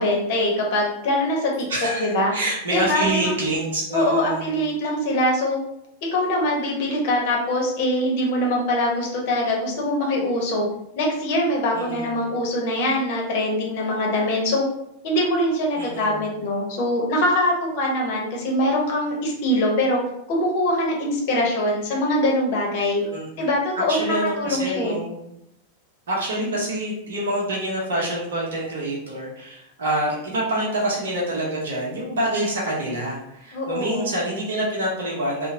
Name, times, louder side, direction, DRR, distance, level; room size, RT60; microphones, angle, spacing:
voice 1, 0.0-1.5 2.0-2.3 2.7-3.3 3.9-5.6 6.1-10.7 11.0-14.6 15.0-20.0 20.3-23.0 23.4-25.0 26.4-26.6 33.5-34.1, left 1 dB, 50° left, -1 dB, 0.8 m, -23 dB
voice 2, 1.7-4.4 11.7-12.1 15.8-16.2 23.0-23.3 23.9-25.2 26.1-35.5, right 1 dB, 60° right, -4 dB, 0.7 m, -26 dB
2.8 x 2.1 x 2.6 m, 0.79 s
figure-of-eight pair, 90°, 0 cm